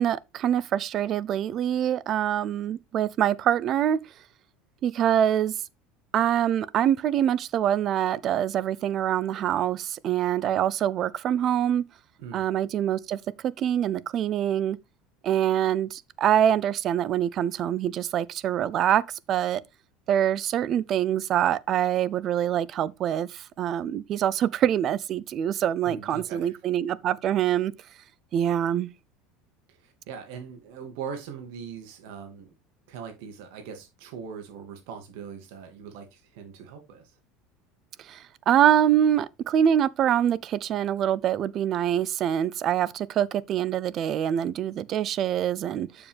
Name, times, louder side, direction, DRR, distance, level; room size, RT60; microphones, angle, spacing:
voice 1, 0.0-4.0 4.8-5.5 6.1-11.8 12.3-13.2 13.6-14.8 15.2-19.0 19.3-19.6 20.1-27.7 28.3-28.9 38.1-45.9, right 10 dB, 40° right, 0.5 m, -25 dB
voice 2, 25.8-26.6 29.7-32.6 32.9-37.2, right 6 dB, 75° right, 2.2 m, -41 dB
7.1 x 7.0 x 3.4 m
supercardioid pair, 135°, 0 cm